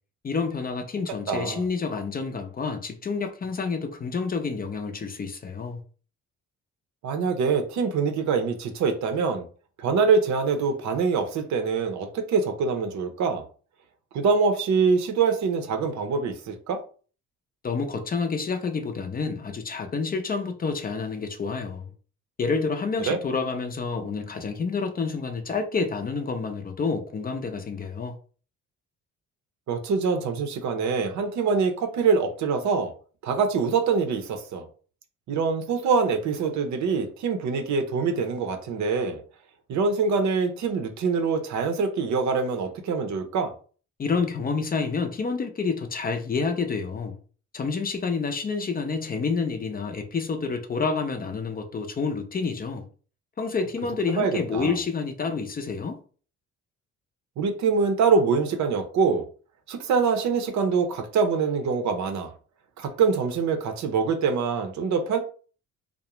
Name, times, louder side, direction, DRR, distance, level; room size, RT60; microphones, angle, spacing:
voice 1, 0.2-5.8 17.6-21.9 22.4-28.2 44.0-47.2 47.5-52.9 53.4-56.0, left 4 dB, 30° left, 0.5 m, -28 dB
voice 2, 1.3-1.6 7.0-9.5 9.8-13.4 14.1-16.8 23.0-23.2 29.7-32.9 33.2-34.7 35.3-39.2 39.7-43.5 54.1-54.7 57.4-59.2 59.7-62.3 62.8-65.2, right 5 dB, 70° right, 0.6 m, -24 dB
2.4 x 2.1 x 2.9 m
cardioid pair, 90°, 30 cm